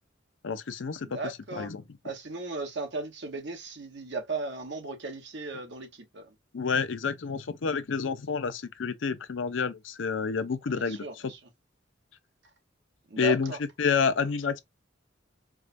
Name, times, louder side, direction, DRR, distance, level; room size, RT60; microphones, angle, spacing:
voice 1, 0.4-1.8 6.5-11.3 13.2-14.6, left 5 dB, 80° left, 0.5 m, -29 dB
voice 2, 1.0-1.7 2.0-6.3 10.7-11.4 13.1-13.6, right 3 dB, 65° right, 1.0 m, -36 dB
4.7 x 2.2 x 2.5 m
head